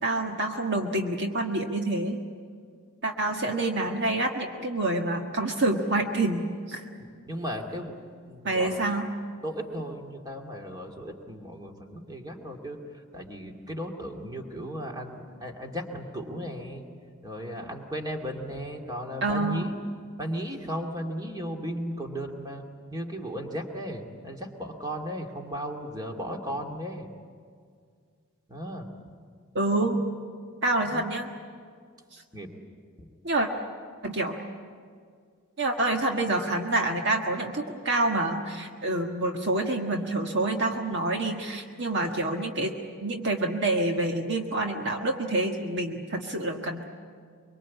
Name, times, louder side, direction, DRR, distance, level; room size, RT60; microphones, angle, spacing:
voice 1, 0.0-2.2 3.0-6.8 8.4-9.1 19.2-19.7 29.5-30.0 30.6-31.3 32.1-32.2 33.2-33.5 34.0-34.4 35.6-42.7 43.0-46.8, right 2 dB, 55° right, 2 dB, 1.6 m, -27 dB
voice 2, 7.0-8.0 8.2-8.8 9.4-16.8 17.2-19.7 20.2-22.6 22.9-27.1 28.5-28.9 29.8-29.9 30.8-31.0 32.3-32.5 33.0-33.1, equal, 20° right, 2 dB, 2.5 m, -36 dB
24.0 x 24.0 x 8.5 m, 2.1 s
head